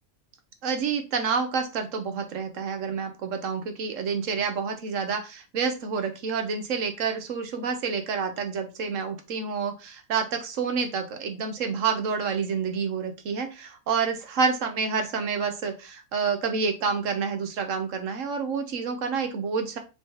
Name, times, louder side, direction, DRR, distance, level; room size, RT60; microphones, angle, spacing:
voice 1, 0.6-19.8, right 5 dB, 70° right, 6 dB, 1.1 m, -28 dB
4.7 x 3.5 x 2.9 m, 0.29 s
omnidirectional pair, 1.4 m